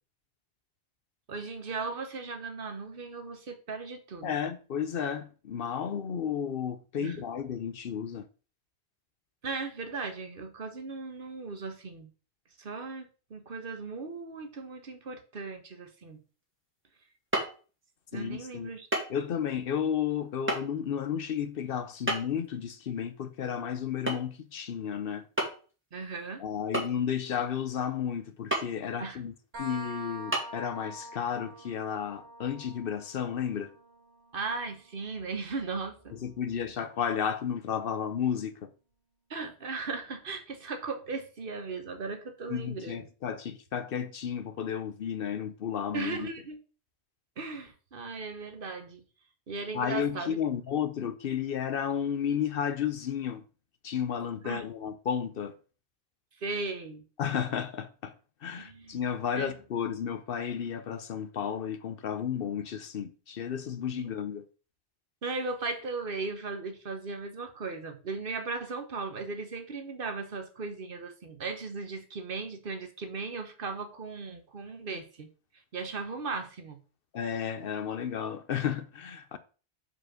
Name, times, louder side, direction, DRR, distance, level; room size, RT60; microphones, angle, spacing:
voice 1, 1.3-4.4 7.0-7.2 9.4-12.1 12.6-16.2 18.1-18.9 25.9-26.4 29.0-29.2 34.3-36.1 39.3-43.0 45.9-46.6 47.4-49.0 49.5-50.4 54.4-54.6 56.4-57.1 58.6-59.0 59.3-59.5 64.0-64.1 65.2-75.3 75.5-76.8, right 4 dB, 55° right, 1.2 m, -37 dB
voice 2, 4.2-8.3 18.1-18.7 19.1-25.2 26.4-33.7 36.1-38.7 42.5-46.3 49.7-53.4 53.8-55.5 57.2-58.1 58.4-64.5 77.1-79.4, left 8 dB, 60° left, 0.8 m, -32 dB
sound 1, 17.3-17.6 18.9-19.1 19.4-19.5 20.5-20.6 22.1-22.5 24.1-24.3 24.6-24.7 25.4-25.7 26.7-27.3 28.5-28.7 29.3-29.4 30.3-30.4, right 1 dB, 10° right, 1.9 m, -30 dB
sound 2, 29.5-37.0, right 2 dB, 70° right, 2.3 m, -47 dB
5.0 x 4.6 x 6.2 m
omnidirectional pair, 1.1 m